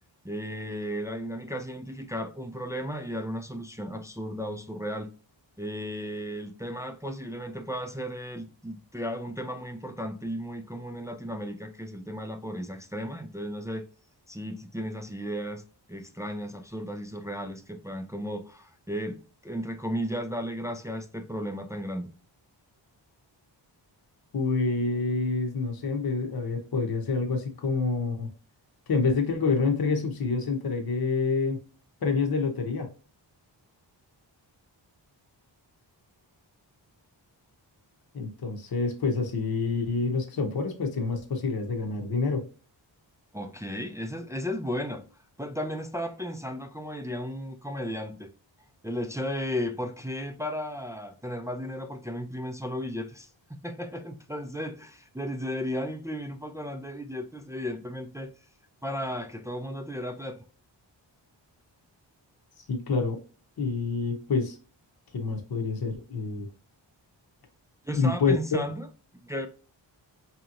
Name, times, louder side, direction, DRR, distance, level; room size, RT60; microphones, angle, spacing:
voice 1, 0.2-5.1 5.6-13.9 14.3-15.6 15.9-19.2 19.4-22.1 43.3-45.0 45.4-48.3 48.8-58.3 58.8-60.4 67.8-68.9 69.2-69.5, equal, 10° right, 0.3 m, -34 dB
voice 2, 24.3-28.3 28.9-31.6 32.0-32.9 38.1-42.5 62.7-63.2 63.6-64.6 65.1-66.5 67.9-68.6, left 4 dB, 55° left, 0.8 m, -27 dB
4.9 x 2.9 x 2.4 m
wide cardioid pair, 120°, 45 cm